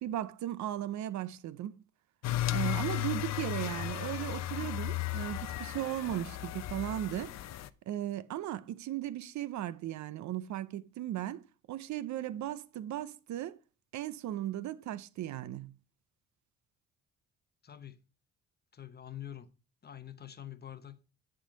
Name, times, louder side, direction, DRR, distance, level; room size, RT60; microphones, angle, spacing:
voice 1, 0.0-1.8 2.5-7.3 7.9-13.6 13.9-15.8, right 12 dB, 70° right, 0.6 m, -37 dB
sound 1, 2.2-7.7, left 14 dB, 60° left, 0.5 m, -35 dB
voice 2, 17.6-18.0 18.7-19.5 19.8-21.0, left 11 dB, 35° left, 0.8 m, -46 dB
10.0 x 3.8 x 5.0 m
cardioid pair, 90°, 30 cm